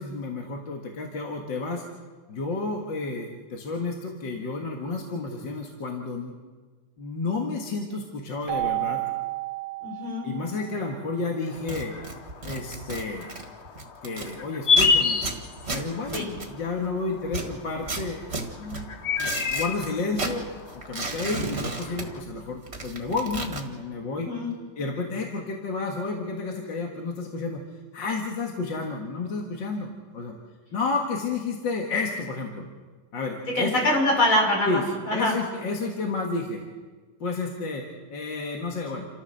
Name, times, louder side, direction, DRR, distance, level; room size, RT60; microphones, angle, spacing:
voice 1, 0.0-1.8 2.3-6.3 7.0-9.0 10.2-11.9 12.4-13.3 14.0-15.2 15.7-18.3 18.6-18.9 19.2-20.5 20.9-24.3 24.8-27.6 27.9-30.4 30.7-32.6 33.1-33.7 34.6-36.6 37.2-39.1, left 3 dB, 65° left, 1 dB, 2.4 m, -31 dB
Keyboard (musical), 8.5-11.1, right 20 dB, 85° right, 2.0 m, -31 dB
voice 2, 9.8-10.3 16.1-16.3 24.2-24.5 33.6-34.8 35.1-35.4, left 1 dB, 85° left, -1 dB, 6.2 m, -23 dB
sound 1, 11.5-22.2, left 5 dB, 45° left, 0.9 m, -30 dB
sound 2, 11.6-14.3 14.7-16.9 17.2-19.9 20.1-22.4 22.6-23.6, right 3 dB, 30° right, 2.2 m, -34 dB
29.0 x 14.0 x 6.6 m, 1.4 s
omnidirectional pair, 2.2 m